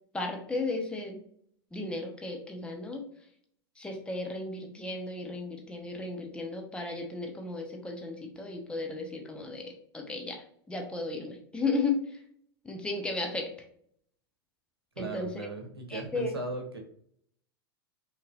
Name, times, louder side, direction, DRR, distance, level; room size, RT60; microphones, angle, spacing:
voice 1, 0.1-1.2 1.7-3.0 3.8-12.2 12.6-13.5 15.0-15.3 15.9-16.3, left 3 dB, 10° left, 1 dB, 1.0 m, -34 dB
voice 2, 15.0-16.8, right 2 dB, 75° right, 3 dB, 1.1 m, -37 dB
5.7 x 3.2 x 2.5 m, 0.63 s
figure-of-eight pair, 90°, 13 cm